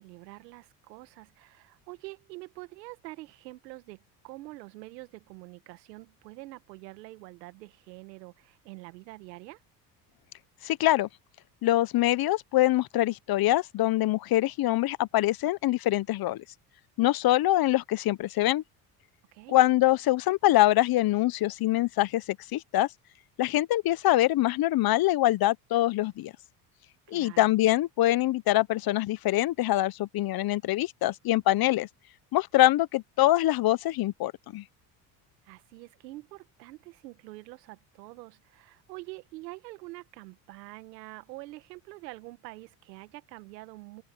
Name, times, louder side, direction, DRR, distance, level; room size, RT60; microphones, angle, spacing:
voice 1, 0.0-9.6 19.3-19.6 27.1-27.5 35.4-44.0, right 21 dB, 90° right, 1.9 m, -46 dB
voice 2, 10.6-11.1 11.6-16.4 17.0-18.6 19.5-22.9 23.4-26.3 27.1-31.9 32.3-34.6, left 15 dB, 50° left, 0.9 m, -24 dB
open air
supercardioid pair, 85°, 48 cm